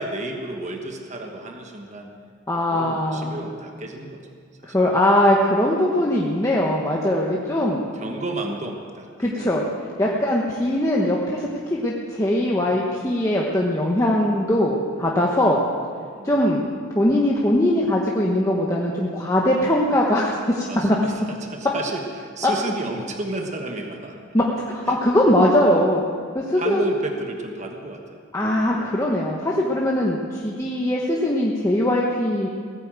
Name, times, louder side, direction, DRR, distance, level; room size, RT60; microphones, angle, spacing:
voice 1, 0.0-2.1 2.7-4.2 4.6-4.8 6.9-7.1 7.9-9.5 10.0-10.3 12.6-12.9 13.9-14.2 15.4-15.6 16.1-16.4 20.7-24.2 24.9-25.0 26.5-28.2 30.8-30.9, right 1 dB, 35° right, 3 dB, 1.2 m, -32 dB
voice 2, 2.5-3.4 4.7-7.8 9.2-9.6 10.0-11.4 11.7-15.6 16.2-16.6 16.9-21.0 24.3-24.4 24.7-26.0 26.3-26.9 28.3-32.5, left 1 dB, 15° left, -3 dB, 1.1 m, -21 dB
17.0 x 9.8 x 7.5 m, 2.1 s
head